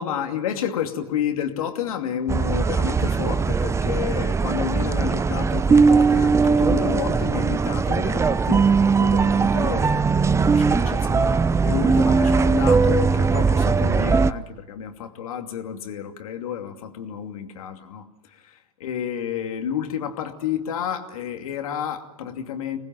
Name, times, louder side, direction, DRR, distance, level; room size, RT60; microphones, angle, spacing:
voice 1, 0.0-22.8, left 9 dB, 75° left, 5 dB, 2.7 m, -30 dB
sound 1, 2.3-14.3, right 5 dB, 15° right, 0.7 m, -19 dB
26.0 x 20.0 x 7.6 m, 1.1 s
hypercardioid pair, 95°, 18 cm